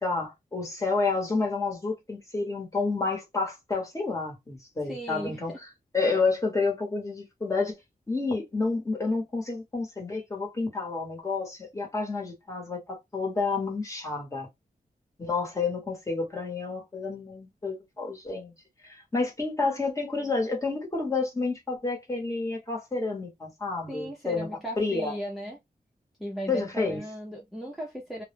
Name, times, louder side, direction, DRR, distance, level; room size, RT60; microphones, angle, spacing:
voice 1, 0.0-5.5 5.9-7.7 8.1-14.5 15.2-18.5 18.8-24.5 24.8-25.1 26.5-27.0, left 3 dB, 20° left, 0.9 m, -29 dB
voice 2, 4.8-5.6 23.9-25.6 26.2-28.2, equal, ahead, 0.5 m, -37 dB
2.1 x 2.0 x 3.1 m
wide cardioid pair, 135°, 15 cm